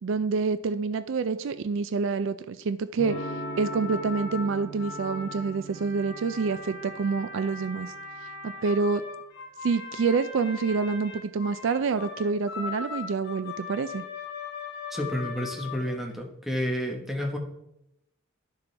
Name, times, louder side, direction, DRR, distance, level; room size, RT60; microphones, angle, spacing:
voice 1, 0.0-3.3 3.6-7.9 8.2-9.0 9.6-14.0, right 4 dB, 60° right, 12 dB, 0.3 m, -27 dB
Electric guitar / Strum, 3.0-8.7, right 2 dB, 75° left, 1.7 m, -42 dB
sound 1, 3.1-16.1, left 4 dB, 50° left, 2.0 m, -39 dB
voice 2, 14.9-17.4, equal, ahead, 1 dB, 1.2 m, -30 dB
11.0 x 6.9 x 3.3 m, 0.84 s
head